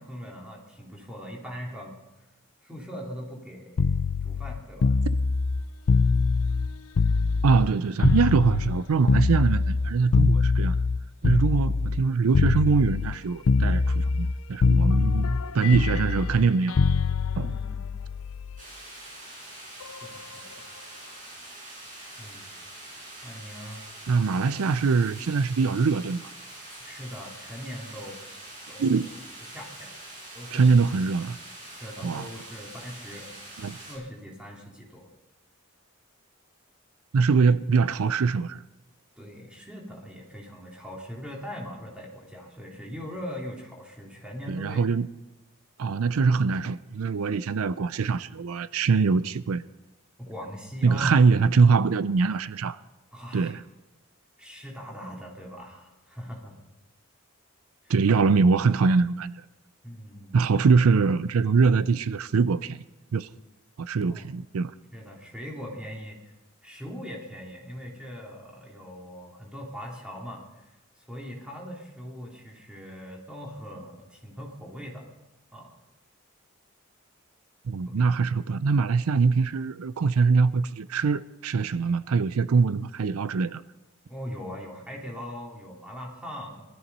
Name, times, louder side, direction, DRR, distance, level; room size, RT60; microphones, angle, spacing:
voice 1, 0.0-2.0 2.6-5.0 11.2-11.4 14.7-15.0 15.5-15.7 17.4-18.0 20.0-20.7 22.2-22.6 23.2-23.8 26.8-28.3 28.7-29.0 29.5-29.9 30.3-30.8 31.8-33.3 33.9-35.1 39.2-44.8 50.2-51.2 53.1-53.6 54.4-56.6 57.8-57.9 59.8-60.4 64.0-64.3 64.9-66.3 66.6-75.1 75.5-75.8 77.8-78.1 84.0-86.6, equal, 5° right, 2.8 m, -41 dB
sound 1, 3.8-7.7 8.0-12.0 12.3-13.2 13.5-14.4 14.6-18.6 19.8-20.1, left 4 dB, 80° left, 0.5 m, -23 dB
voice 2, 7.4-10.8 11.2-16.8 17.4-17.5 24.1-26.2 28.8-29.1 30.5-31.4 32.0-32.3 33.6-33.8 37.1-38.6 44.5-45.1 45.8-49.6 50.8-52.8 53.3-53.6 57.9-59.4 60.3-62.8 63.1-63.3 63.8-64.7 77.7-83.6, right 4 dB, 85° right, 0.5 m, -23 dB
Heavy Rain, 18.6-34.0, right 1 dB, 35° right, 7.1 m, -44 dB
18.5 x 13.0 x 5.4 m
head